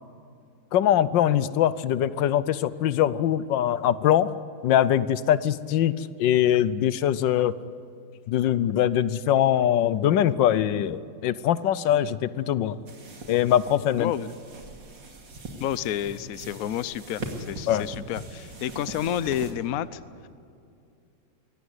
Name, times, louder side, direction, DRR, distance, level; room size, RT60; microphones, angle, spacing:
voice 1, 0.7-4.3 4.6-7.5 8.3-12.8 13.3-14.1 17.7-17.8, left 11 dB, 80° left, 16 dB, 1.4 m, -22 dB
sound 1, 12.9-19.5, right 2 dB, 80° right, 3.1 m, -41 dB
voice 2, 14.0-14.3 15.6-20.3, left 11 dB, 65° left, 16 dB, 1.0 m, -30 dB
23.5 x 17.5 x 9.8 m, 2.4 s
omnidirectional pair, 2.0 m